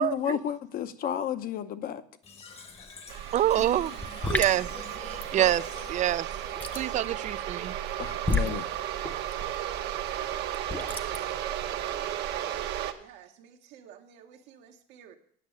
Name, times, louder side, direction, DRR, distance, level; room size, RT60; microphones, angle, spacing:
voice 1, 0.0-2.0 8.0-8.7, left 9 dB, 50° left, 0.8 m, -32 dB
Fill (with liquid), 2.2-7.2, left 4 dB, 30° left, 1.1 m, -46 dB
sound 1, 2.7-3.0 3.2-11.9, left 2 dB, 10° left, 0.8 m, -33 dB
sound 2, 3.1-12.9, right 11 dB, 65° right, 1.0 m, -34 dB
voice 2, 3.3-4.0 4.3-6.3 6.7-7.8, right 12 dB, 40° right, 0.4 m, -26 dB
voice 3, 13.0-15.2, right 8 dB, 80° right, 1.4 m, -52 dB
9.3 x 6.2 x 8.6 m
cardioid pair, 120°, 19 cm